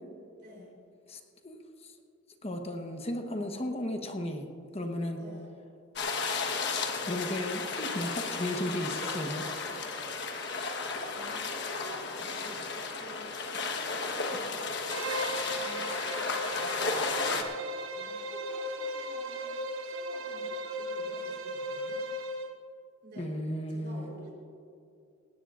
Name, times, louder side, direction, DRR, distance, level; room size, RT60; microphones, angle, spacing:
voice 1, 0.4-0.8 5.2-5.5 11.0-17.5 17.9-22.0 23.0-23.3 23.7-24.3, equal, 50° right, -2 dB, 3.8 m, -49 dB
voice 2, 1.1-1.6 2.4-4.5 4.7-5.2 7.0-9.4 23.2-24.1, left 1 dB, 30° left, 4 dB, 1.1 m, -34 dB
sound 1, 6.0-17.4, left 4 dB, 55° left, 1.3 m, -34 dB
Bowed string instrument, 14.9-22.6, right 1 dB, 75° right, 1.1 m, -37 dB
18.5 x 18.0 x 2.5 m, 2.5 s
head